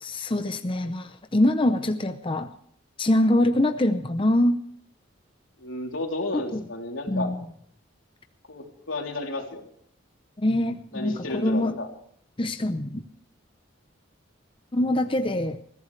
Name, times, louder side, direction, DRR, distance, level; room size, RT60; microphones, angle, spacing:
voice 1, 0.0-2.5 3.0-4.6 6.3-6.6 7.1-7.4 10.4-11.8 12.4-13.0 14.7-15.6, left 1 dB, 25° left, 8 dB, 0.7 m, -24 dB
voice 2, 5.6-7.3 8.5-9.6 10.9-11.9, left 2 dB, 90° left, 1 dB, 3.3 m, -32 dB
21.5 x 15.5 x 3.3 m, 0.66 s
head